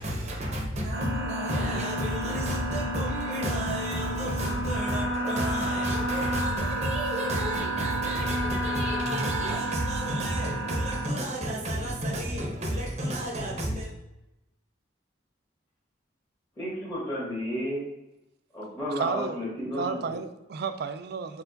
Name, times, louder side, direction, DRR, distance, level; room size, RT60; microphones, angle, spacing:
voice 1, 0.0-13.9, equal, 35° right, 0.7 m, -31 dB
sound 1, 0.9-11.1, right 1 dB, 80° right, 0.9 m, -31 dB
voice 2, 16.6-17.9 18.5-20.2, equal, 20° left, 1.2 m, -32 dB
voice 3, 19.0-19.4 19.8-21.4, right 6 dB, 55° right, 0.3 m, -32 dB
4.4 x 2.3 x 3.9 m
head